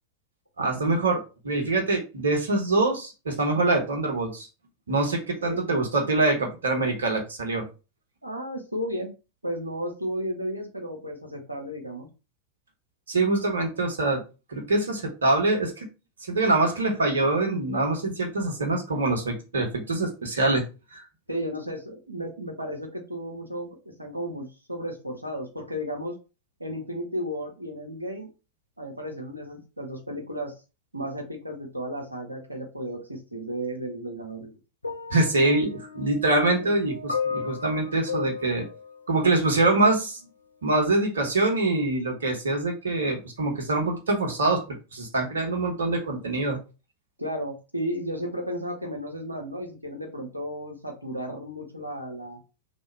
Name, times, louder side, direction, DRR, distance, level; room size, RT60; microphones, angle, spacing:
voice 1, 0.6-4.5 4.9-7.7 13.1-14.2 14.5-15.9 16.2-20.6 20.9-21.0 35.1-38.6 39.1-40.2 40.6-44.6 44.9-46.6, right 2 dB, 70° right, 2 dB, 1.2 m, -24 dB
voice 2, 8.2-9.1 9.4-12.1 21.3-26.1 26.6-28.3 28.8-30.5 30.9-34.6 36.6-36.7 47.2-52.4, equal, 85° right, 2 dB, 1.0 m, -34 dB
sound 1, 34.8-39.9 40.8-41.0, left 5 dB, 80° left, 0.4 m, -35 dB
3.4 x 2.7 x 4.4 m, 0.32 s
figure-of-eight pair, 90°, 0 cm